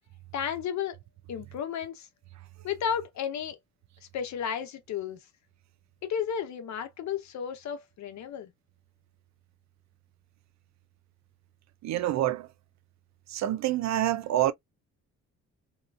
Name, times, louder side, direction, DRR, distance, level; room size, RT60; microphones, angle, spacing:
voice 1, 0.3-1.0 1.3-2.1 2.6-3.6 4.1-5.2 6.0-8.5, left 8 dB, 65° left, 0.8 m, -33 dB
voice 2, 11.8-12.5 13.3-14.5, right 13 dB, 65° right, 0.5 m, -27 dB
2.8 x 2.4 x 2.3 m
cardioid pair, 90°, 30 cm